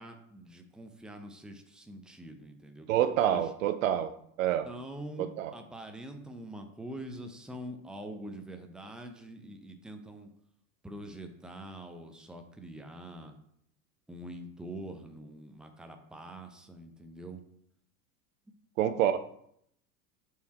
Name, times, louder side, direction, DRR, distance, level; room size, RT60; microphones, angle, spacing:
voice 1, 0.0-3.0 3.3-3.4 4.6-10.3 10.8-13.3 14.1-17.4, right 1 dB, ahead, 5 dB, 0.7 m, -44 dB
voice 2, 2.9-4.1 4.4-4.7 5.2-5.5 18.8-19.2, right 11 dB, 55° right, 11 dB, 0.6 m, -27 dB
6.9 x 4.7 x 4.4 m, 0.71 s
figure-of-eight pair, 80°, 49 cm